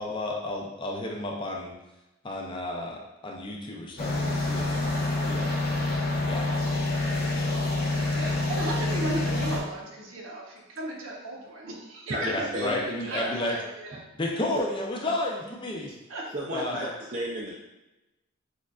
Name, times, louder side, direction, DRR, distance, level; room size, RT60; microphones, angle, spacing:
voice 1, 0.0-1.7 2.2-5.5 6.2-6.5 7.4-7.6 12.2-13.6 14.2-16.0 16.5-16.9, left 1 dB, 25° left, 0.5 m, -32 dB
sound 1, 4.0-9.6, left 2 dB, 50° left, 0.8 m, -27 dB
voice 2, 7.9-14.0 16.1-16.2, right 1 dB, 70° right, 0.9 m, -35 dB
voice 3, 12.5-13.3 16.3-17.5, right 1 dB, 35° right, 0.4 m, -33 dB
6.3 x 2.5 x 2.3 m
head